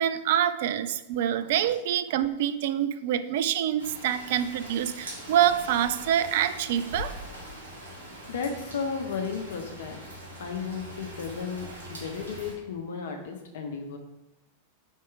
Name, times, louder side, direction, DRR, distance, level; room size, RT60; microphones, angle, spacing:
voice 1, 0.0-7.2, right 10 dB, 55° right, 11 dB, 0.4 m, -26 dB
Rain, 3.8-12.5, equal, 70° right, 2.0 m, -42 dB
voice 2, 8.1-10.0 10.4-14.0, left 5 dB, 60° left, 4 dB, 1.0 m, -34 dB
4.6 x 4.6 x 4.7 m, 0.92 s
figure-of-eight pair, 90°, 0 cm